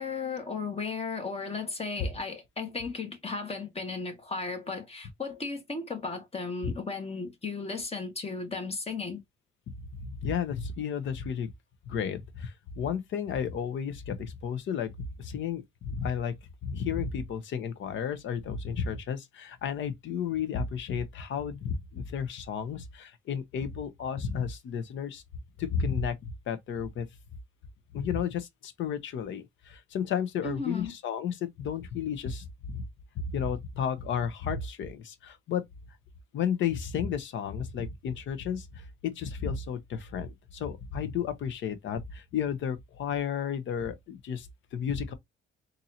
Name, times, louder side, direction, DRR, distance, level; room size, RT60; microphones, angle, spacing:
voice 1, 0.0-9.2 30.4-30.9, left 4 dB, 30° left, 1.5 m, -35 dB
voice 2, 10.0-11.5 11.9-16.3 16.6-25.2 25.6-27.1 27.9-32.8 33.2-35.6 36.3-45.1, left 7 dB, 75° left, 0.8 m, -33 dB
4.0 x 2.7 x 2.8 m
cardioid pair, 90°, 20 cm